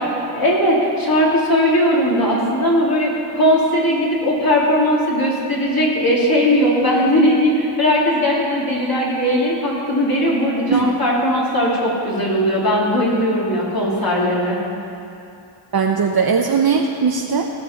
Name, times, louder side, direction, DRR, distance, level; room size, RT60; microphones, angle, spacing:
voice 1, 0.3-14.6, equal, 50° left, -5 dB, 3.2 m, -18 dB
voice 2, 15.7-17.5, right 6 dB, 50° right, 2 dB, 0.8 m, -19 dB
17.5 x 5.8 x 6.9 m, 2.7 s
cardioid pair, 60°, 47 cm